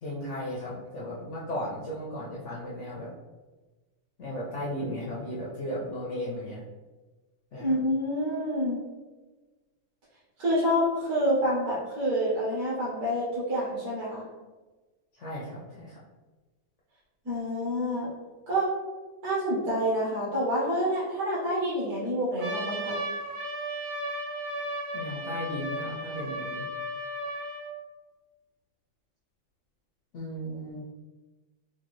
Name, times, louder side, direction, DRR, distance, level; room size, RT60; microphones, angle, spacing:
voice 1, 0.0-3.1 4.2-6.6 7.5-7.8 15.2-16.0 24.9-26.7 30.1-30.8, equal, 75° left, -5 dB, 0.6 m, -35 dB
voice 2, 7.6-8.8 10.4-14.3 17.2-18.1 18.5-18.7 19.2-23.0, equal, 55° right, -8 dB, 1.4 m, -27 dB
Trumpet, 22.4-27.7, equal, 90° right, 1.6 m, -35 dB
4.9 x 2.3 x 3.0 m, 1.2 s
omnidirectional pair, 2.1 m